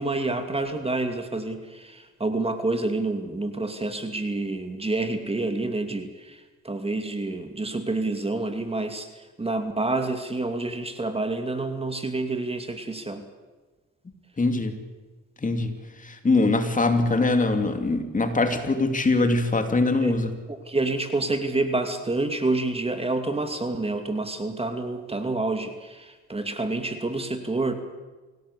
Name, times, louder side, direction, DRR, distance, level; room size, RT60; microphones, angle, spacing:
voice 1, 0.0-13.2 20.0-20.1 20.5-27.8, right 2 dB, 20° right, 7 dB, 2.5 m, -28 dB
voice 2, 14.4-14.8 15.4-15.7 16.0-20.3, left 3 dB, 25° left, 7 dB, 2.9 m, -22 dB
26.0 x 17.5 x 8.4 m, 1.3 s
cardioid pair, 90°, 30 cm